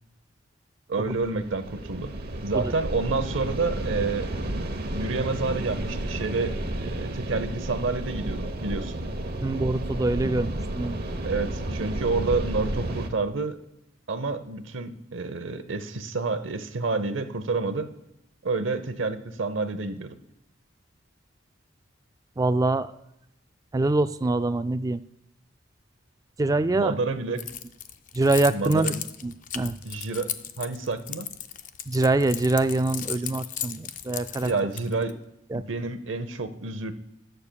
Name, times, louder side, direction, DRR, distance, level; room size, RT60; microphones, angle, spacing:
voice 1, 0.9-2.1 2.4-4.3 4.9-9.0 11.2-13.6 14.1-17.9 18.4-20.2 26.7-27.4 28.5-29.0 29.8-30.3 30.6-31.3 34.4-35.2 35.5-36.9, right 3 dB, 75° right, 10 dB, 0.8 m, -29 dB
sound 1, 1.1-13.1, right 1 dB, 55° right, 1.0 m, -32 dB
voice 2, 9.4-11.0 22.4-22.9 23.7-25.0 26.4-27.0 28.1-28.9 29.2-29.8 31.9-34.5 35.5-35.9, right 2 dB, 20° right, 11 dB, 0.3 m, -24 dB
Keys jangling, 27.4-35.1, left 10 dB, 40° left, 0.5 m, -36 dB
19.0 x 6.7 x 2.3 m, 0.84 s
head